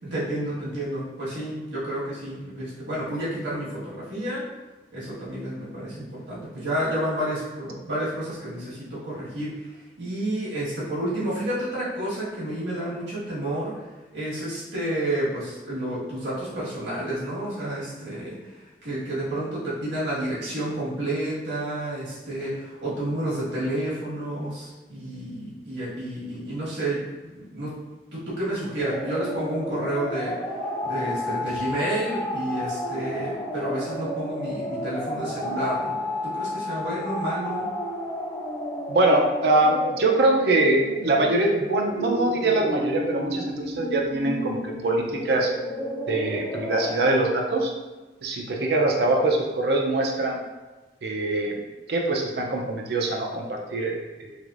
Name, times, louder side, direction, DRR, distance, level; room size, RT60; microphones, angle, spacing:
voice 1, 0.0-4.4 4.9-9.7 10.0-13.7 14.1-27.7 28.1-30.4 30.8-37.7, right 1 dB, 85° right, -8 dB, 1.5 m, -30 dB
sound 1, 28.8-47.0, left 1 dB, 20° left, 0.5 m, -31 dB
voice 2, 38.9-45.5 46.1-47.7 48.2-50.4 51.0-51.6 51.9-54.4, right 2 dB, 65° right, 1 dB, 0.4 m, -23 dB
3.4 x 3.3 x 2.4 m, 1.2 s
head